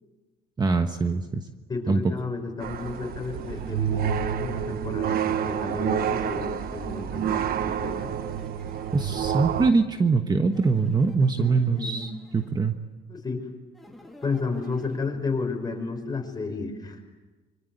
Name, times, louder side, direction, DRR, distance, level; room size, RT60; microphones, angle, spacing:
voice 1, 0.6-1.5 1.9-2.1 8.9-12.8, right 4 dB, 25° right, 6 dB, 1.3 m, -23 dB
voice 2, 1.7-8.1 11.3-12.0 13.1-13.5 14.2-17.0, left 4 dB, 25° left, 3 dB, 5.6 m, -32 dB
sound 1, 2.6-9.7, right 9 dB, 60° right, 1.3 m, -28 dB
sound 2, 2.7-4.9 5.8-9.9 10.5-12.7 13.7-15.0, left 1 dB, ahead, 3.3 m, -51 dB
25.5 x 24.0 x 8.1 m, 1.3 s
cardioid pair, 110°, 17 cm